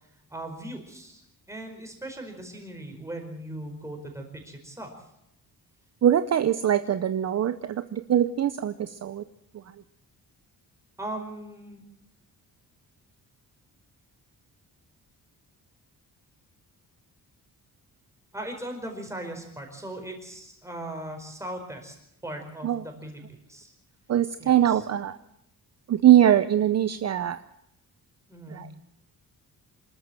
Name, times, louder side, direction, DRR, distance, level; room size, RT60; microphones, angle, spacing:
voice 1, 0.3-1.2 1.5-4.9 11.0-11.8 18.3-21.9 22.2-23.2 23.5-23.7 24.4-24.8 28.3-28.7, right 1 dB, 10° right, 3 dB, 4.8 m, -38 dB
voice 2, 6.0-9.2 22.6-22.8 24.1-25.2 25.9-27.4 28.5-28.7, right 11 dB, 45° right, 12 dB, 0.7 m, -22 dB
26.5 x 13.5 x 7.7 m, 0.80 s
wide cardioid pair, 160°, 36 cm